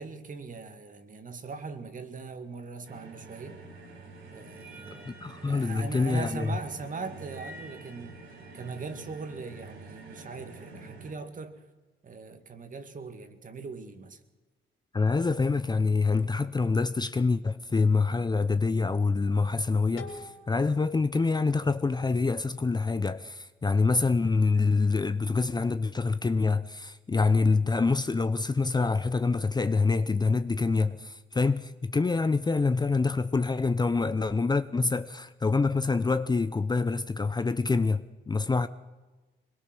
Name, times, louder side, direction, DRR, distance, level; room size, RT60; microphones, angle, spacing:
voice 1, 0.0-3.6 4.3-5.1 5.5-8.2 8.5-11.6 12.0-14.2, right 4 dB, 40° right, 2.2 m, -40 dB
sound 1, 2.9-11.2, right 2 dB, 90° right, 5.2 m, -46 dB
voice 2, 4.9-6.6 14.9-38.7, left 4 dB, 20° left, 0.7 m, -26 dB
sound 2, 20.0-22.8, left 3 dB, 85° left, 3.3 m, -48 dB
22.5 x 21.0 x 6.2 m
cardioid pair, 90°, 20 cm